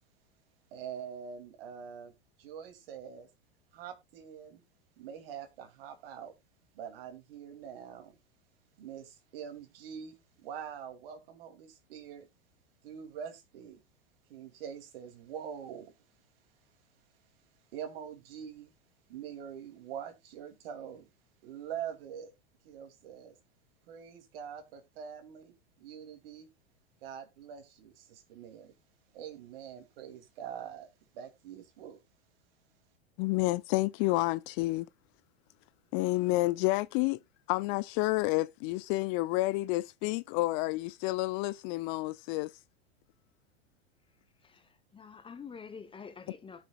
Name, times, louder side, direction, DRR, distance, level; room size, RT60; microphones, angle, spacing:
voice 1, 0.7-2.1 2.4-3.3 3.7-4.6 5.0-6.3 6.7-8.2 8.8-12.3 12.8-13.8 14.3-15.9 17.7-18.7 19.1-21.1 21.4-22.3 22.6-23.4 23.9-26.5 27.0-28.7 29.1-30.9 31.1-32.0, right 8 dB, 60° right, 2.5 m, -44 dB
voice 2, 33.2-34.9 35.9-37.2 37.5-42.5, left 20 dB, 40° left, 0.4 m, -29 dB
voice 3, 44.4-46.6, left 6 dB, 15° left, 0.9 m, -47 dB
17.5 x 6.2 x 2.3 m
hypercardioid pair, 95°, 32 cm